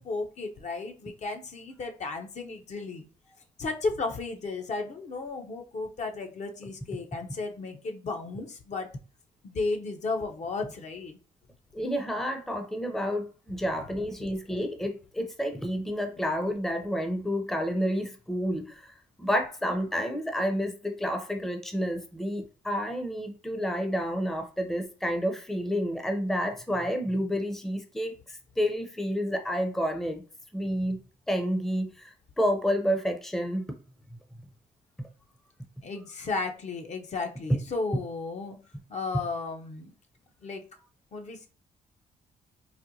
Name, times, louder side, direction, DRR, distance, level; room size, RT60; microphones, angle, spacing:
voice 1, 0.0-3.0 3.6-8.9 9.4-11.2 14.2-14.3 35.8-38.6 38.9-39.9 40.4-40.6 41.1-41.5, left 3 dB, 50° left, 0.6 m, -34 dB
voice 2, 11.7-30.2 30.5-31.0 31.3-33.7, equal, ahead, 0.5 m, -30 dB
4.1 x 2.1 x 2.7 m
supercardioid pair, 70°, 15 cm